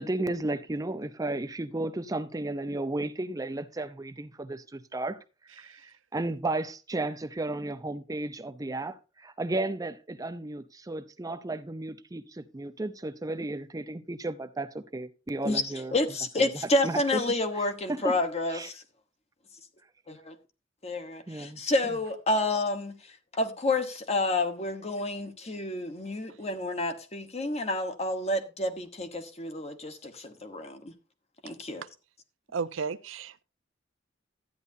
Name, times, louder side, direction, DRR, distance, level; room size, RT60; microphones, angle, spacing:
voice 1, 0.0-5.2 5.6-15.9 16.8-17.2 17.9-18.1 18.5-18.7 21.3-21.6, right 2 dB, 20° right, 0.6 m, -33 dB
voice 2, 15.4-18.8 20.1-20.4 20.8-30.9 31.4-31.8, left 2 dB, 35° left, 1.2 m, -29 dB
voice 3, 32.5-33.4, right 5 dB, 85° right, 0.5 m, -33 dB
13.0 x 9.5 x 2.7 m
head